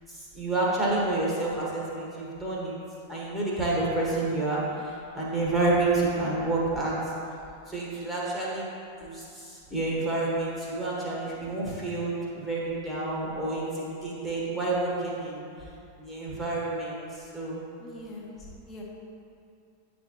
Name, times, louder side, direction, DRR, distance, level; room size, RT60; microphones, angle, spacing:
voice 1, 0.1-2.8 3.1-7.0 7.7-8.7 9.0-15.5 16.0-17.6, right 2 dB, 5° right, -7 dB, 1.4 m, -29 dB
voice 2, 17.8-18.8, left 1 dB, 25° left, -3 dB, 1.1 m, -43 dB
8.8 x 4.3 x 2.9 m, 2.5 s
figure-of-eight pair, 90°, 0 cm